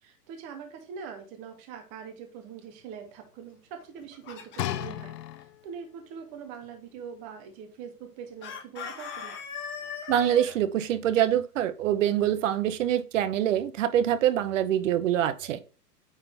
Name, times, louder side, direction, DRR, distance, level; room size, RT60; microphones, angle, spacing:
voice 1, 0.0-9.3, right 7 dB, 15° right, 0.5 m, -43 dB
Chicken rooster, 3.8-5.0 8.4-10.5, left 7 dB, 25° left, 1.5 m, -39 dB
sound 1, 4.6-5.9 6.6-6.7, left 12 dB, 85° left, 0.7 m, -34 dB
voice 2, 10.1-15.6, right 10 dB, 55° right, 0.8 m, -25 dB
9.0 x 3.8 x 3.4 m
hypercardioid pair, 155°, 47 cm